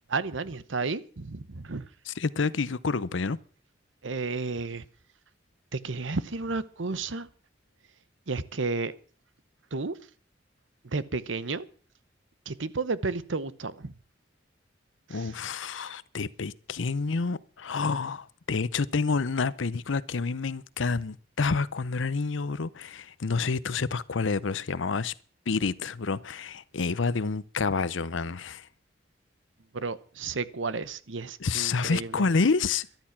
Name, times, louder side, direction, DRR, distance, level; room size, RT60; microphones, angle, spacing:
voice 1, 0.1-1.8 4.0-4.9 5.7-7.3 8.3-8.9 9.7-10.0 10.8-11.6 12.5-13.9 15.1-15.3 29.7-32.2, right 3 dB, 75° right, 1.0 m, -32 dB
voice 2, 2.1-3.4 15.1-25.1 25.5-28.7 31.4-32.9, left 4 dB, 80° left, 0.7 m, -28 dB
13.0 x 12.5 x 5.9 m
head